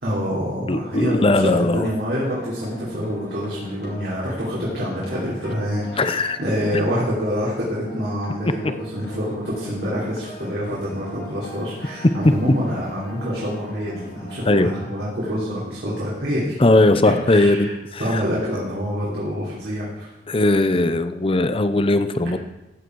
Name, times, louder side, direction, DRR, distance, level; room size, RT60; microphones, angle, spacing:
voice 1, 0.0-16.5 17.0-17.7 18.0-20.1, equal, 65° right, -7 dB, 3.3 m, -26 dB
voice 2, 0.7-1.9 6.0-6.4 14.5-14.7 16.6-18.2 20.3-22.4, left 2 dB, 30° left, 11 dB, 0.7 m, -19 dB
sound 1, 2.2-15.0, equal, 65° left, 2.8 m, -40 dB
15.0 x 8.9 x 4.7 m, 0.99 s
head